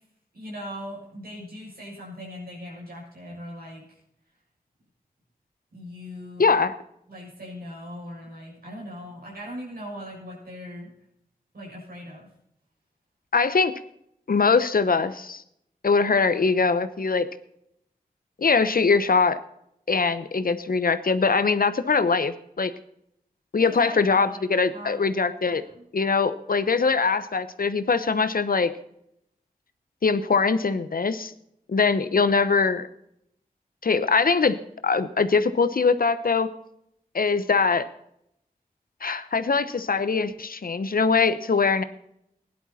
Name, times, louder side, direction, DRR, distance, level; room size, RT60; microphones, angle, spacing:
voice 1, 0.3-3.8 5.7-6.5 7.1-10.9 11.5-12.3 23.6-24.4 24.7-25.0 25.5-25.9, equal, 85° right, -4 dB, 6.8 m, -40 dB
voice 2, 6.4-6.7 13.3-13.7 14.3-15.4 15.8-17.3 18.4-19.4 19.9-22.7 23.5-25.6 25.9-28.7 30.0-31.3 31.7-32.9 33.8-34.6 34.8-36.5 37.1-37.9 39.0-41.8, left 4 dB, 75° left, 12 dB, 0.9 m, -22 dB
17.0 x 11.0 x 4.2 m, 0.75 s
cardioid pair, 45°, 15 cm